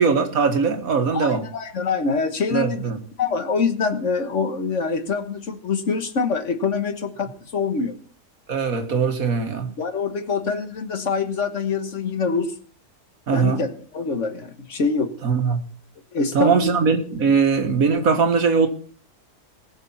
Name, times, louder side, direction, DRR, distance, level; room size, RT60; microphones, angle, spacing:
voice 1, 0.0-1.4 2.5-3.0 8.5-9.7 13.3-13.6 15.2-15.6 16.3-18.7, right 5 dB, 60° right, 2.0 m, -20 dB
voice 2, 1.1-2.9 3.2-8.0 9.8-12.6 13.3-15.1 16.1-16.8, left 5 dB, 50° left, 1.6 m, -25 dB
20.0 x 6.8 x 5.7 m
omnidirectional pair, 1.7 m